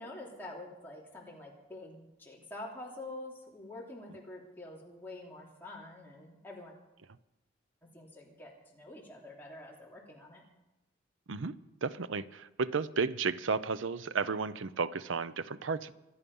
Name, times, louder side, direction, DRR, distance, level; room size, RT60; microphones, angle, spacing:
voice 1, 0.0-6.7 7.8-10.4, left 2 dB, 10° left, -4 dB, 3.1 m, -47 dB
voice 2, 11.8-15.9, right 4 dB, 80° right, 15 dB, 0.7 m, -33 dB
25.0 x 9.8 x 5.5 m, 1.0 s
head